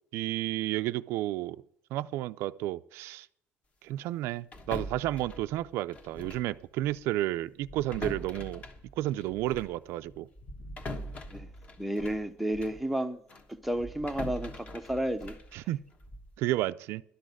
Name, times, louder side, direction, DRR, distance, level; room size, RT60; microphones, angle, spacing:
voice 1, 0.1-1.6 1.9-3.3 3.8-8.6 9.0-10.3 15.5-15.8 16.4-17.0, right 15 dB, 70° right, 0.3 m, -32 dB
sound 1, 4.5-6.6 6.8-7.0 7.6-12.9 13.3-16.4, left 1 dB, 30° left, 1.1 m, -43 dB
voice 2, 11.8-13.2 13.5-15.4, right 1 dB, ahead, 0.5 m, -32 dB
11.5 x 6.3 x 7.9 m
cardioid pair, 150°, 4 cm